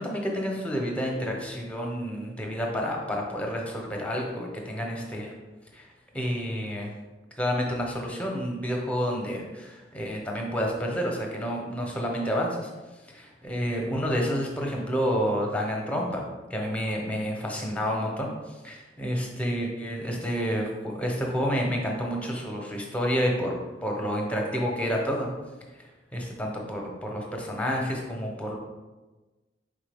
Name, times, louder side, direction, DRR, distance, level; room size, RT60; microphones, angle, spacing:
voice 1, 0.0-5.3 5.7-5.9 6.1-6.9 7.4-12.7 13.4-16.2 16.5-23.6 23.8-25.3 26.1-28.6, equal, 5° left, 0 dB, 0.7 m, -29 dB
4.5 x 3.5 x 3.4 m, 1.2 s
head